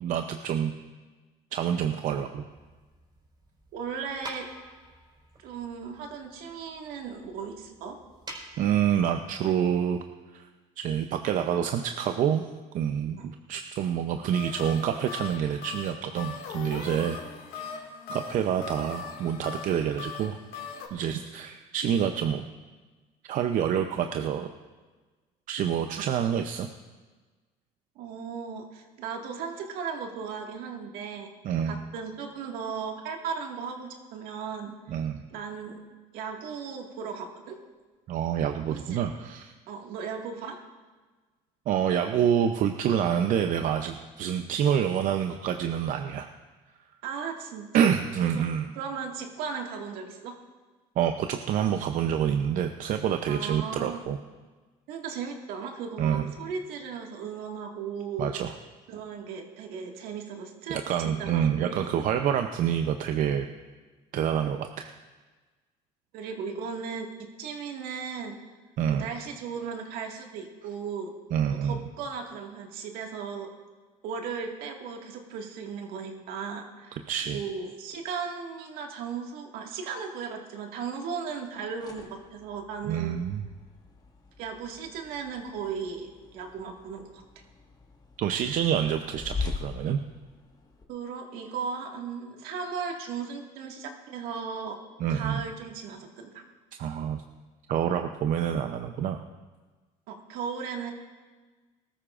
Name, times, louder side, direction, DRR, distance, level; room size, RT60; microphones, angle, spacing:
voice 1, 0.0-0.7 1.5-2.5 8.6-10.0 10.3-10.5 10.8-12.4 12.7-13.2 13.5-17.2 17.7-17.8 18.1-20.4 20.9-22.4 23.2-24.5 25.5-26.7 31.4-31.8 34.9-35.2 38.1-39.5 41.7-46.3 47.7-48.7 51.0-54.2 56.0-56.3 58.2-58.5 60.7-63.5 64.1-64.9 68.8-69.1 71.3-71.8 77.1-77.4 82.8-83.4 88.2-90.0 95.0-95.4 96.8-97.2 97.7-99.2, right 9 dB, 60° right, 6 dB, 0.7 m, -27 dB
sound 1, 2.5-9.5, right 1 dB, 30° right, 4.9 m, -48 dB
voice 2, 3.7-4.5 5.4-8.0 13.2-13.3 28.0-31.3 31.7-34.7 35.3-35.8 36.1-37.6 38.7-39.0 39.7-40.6 47.0-47.9 48.2-48.4 48.8-50.3 53.3-54.0 54.9-58.3 58.9-60.8 61.0-61.9 66.1-67.1 67.4-68.3 68.9-71.1 71.6-73.5 74.0-77.0 77.3-83.1 84.4-87.0 90.9-94.8 95.1-96.4 100.1-100.9, right 6 dB, 75° right, 2 dB, 1.9 m, -36 dB
sound 2, 14.3-20.9, left 6 dB, 80° left, 2.1 m, -40 dB
sound 3, 81.5-90.8, left 4 dB, 25° left, 1.6 m, -42 dB
20.0 x 13.5 x 2.5 m, 1.3 s
supercardioid pair, 95°, 15 cm